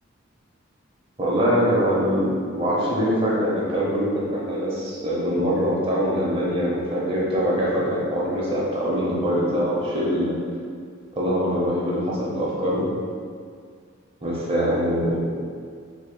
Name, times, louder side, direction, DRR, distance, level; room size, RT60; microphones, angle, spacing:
voice 1, 1.2-10.3 11.2-12.9 14.2-15.2, equal, 25° right, -5 dB, 0.7 m, -23 dB
4.6 x 2.8 x 2.2 m, 2.1 s
head